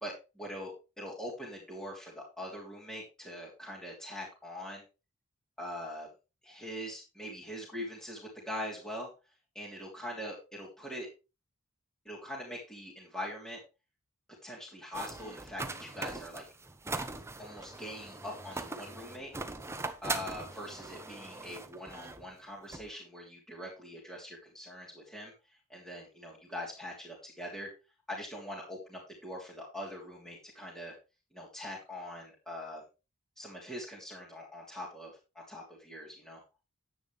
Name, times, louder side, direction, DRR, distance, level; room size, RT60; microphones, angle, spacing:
voice 1, 0.0-4.8 5.6-6.1 6.4-9.1 9.5-11.1 12.0-13.6 14.4-16.4 17.4-19.3 20.0-25.3 25.7-27.7 28.1-31.0 31.3-32.8 33.4-36.4, left 1 dB, 5° left, -5 dB, 3.1 m, -42 dB
sound 1, 14.9-22.3 22.7-22.9, right 3 dB, 10° right, 0.9 m, -41 dB
10.0 x 9.2 x 3.2 m, 0.29 s
head